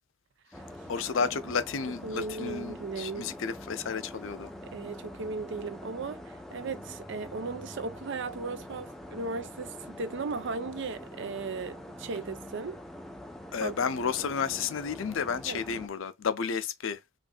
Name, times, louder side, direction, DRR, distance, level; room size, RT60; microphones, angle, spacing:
sound 1, 0.5-15.9, left 1 dB, ahead, 0.5 m, -45 dB
voice 1, 0.9-4.5 13.5-17.0, left 6 dB, 60° left, 0.5 m, -32 dB
voice 2, 2.0-3.3 4.7-12.8 13.6-13.8 14.2-14.3 15.5-15.6, right 4 dB, 55° right, 0.5 m, -36 dB
4.8 x 2.6 x 2.2 m
head